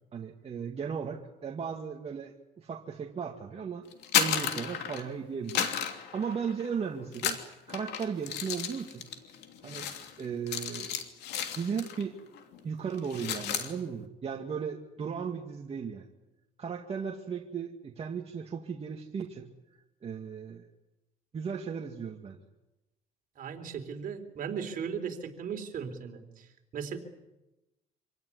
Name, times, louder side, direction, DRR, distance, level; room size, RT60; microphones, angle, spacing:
voice 1, 0.1-3.9 4.1-7.4 7.7-9.1 9.6-9.9 10.2-10.9 11.5-12.2 12.6-16.1 16.6-20.7 21.3-22.4, right 6 dB, 35° right, 1 dB, 2.0 m, -36 dB
sound 1, 3.9-5.1 5.5-6.7 7.1-12.1 12.3-12.6 12.9-13.7, left 9 dB, 80° left, 2.9 m, -33 dB
voice 2, 23.4-27.0, right 7 dB, 55° right, 5 dB, 3.8 m, -37 dB
26.0 x 17.5 x 9.9 m, 1.0 s
cardioid pair, 110°, 17 cm